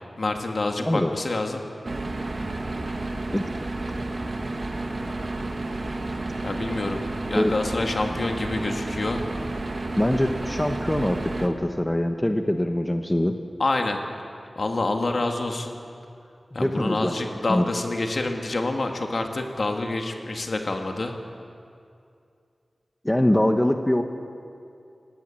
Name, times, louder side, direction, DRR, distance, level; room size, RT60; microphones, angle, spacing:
voice 1, 0.2-1.6 6.4-9.2 13.6-14.0 14.6-15.8 16.5-21.1, left 2 dB, 60° left, 4 dB, 2.1 m, -27 dB
voice 2, 0.8-1.1 3.3-3.4 7.3-7.5 10.0-13.4 16.6-17.1 17.5-17.7 23.0-24.0, left 1 dB, 15° left, 6 dB, 1.1 m, -23 dB
sound 1, 1.8-11.5, right 2 dB, 50° right, 1.7 m, -31 dB
19.5 x 17.0 x 8.8 m, 2.4 s
wide cardioid pair, 85°, 0 cm